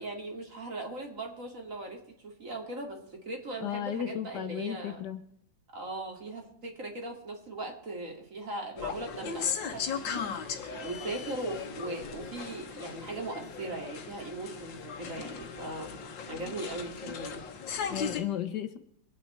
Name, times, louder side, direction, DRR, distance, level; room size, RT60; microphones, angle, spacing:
voice 1, 0.0-5.0 5.7-15.9 16.3-17.4, right 2 dB, 45° right, 2 dB, 2.7 m, -39 dB
voice 2, 3.6-5.2 17.9-18.8, left 10 dB, 70° left, 10 dB, 1.5 m, -34 dB
sound 1, 8.8-18.2, left 6 dB, 85° left, 1.9 m, -37 dB
24.0 x 9.0 x 4.3 m, 0.69 s
omnidirectional pair, 2.0 m